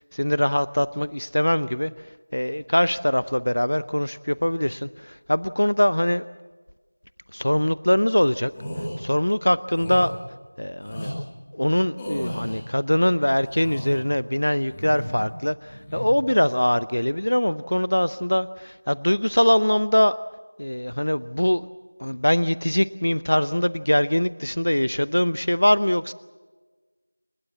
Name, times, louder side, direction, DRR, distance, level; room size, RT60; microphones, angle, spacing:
voice 1, 0.0-1.9 2.3-6.2 7.3-8.5 9.0-10.1 10.6-11.2 11.5-20.2 20.6-21.7 22.0-26.1, left 1 dB, 65° left, 16 dB, 0.7 m, -22 dB
sound 1, 8.5-8.9 9.7-10.1 10.8-11.1 12.0-12.6 13.3-14.0 14.6-15.3 15.6-16.0, equal, 10° left, 3.0 m, -34 dB
30.0 x 15.5 x 8.5 m, 1.3 s
figure-of-eight pair, 175°, 0 cm